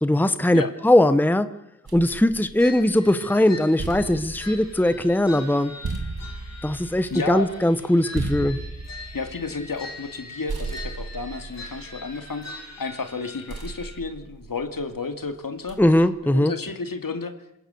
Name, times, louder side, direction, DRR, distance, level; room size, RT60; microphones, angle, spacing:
voice 1, 0.0-1.5 1.9-5.7 6.6-8.6 15.8-16.5, left 1 dB, 5° left, 12 dB, 1.0 m, -20 dB
sound 1, 1.9-3.1 3.5-10.2 10.5-12.7 13.5-15.0 15.7-16.1, right 3 dB, 80° right, 2.8 m, -36 dB
sound 2, 2.6-14.0, left 2 dB, 45° left, 5.3 m, -42 dB
voice 2, 7.1-7.5 9.1-12.4 12.8-15.8 16.2-17.3, left 4 dB, 65° left, 7 dB, 2.3 m, -31 dB
27.0 x 16.0 x 7.0 m, 0.84 s
wide cardioid pair, 80°, 36 cm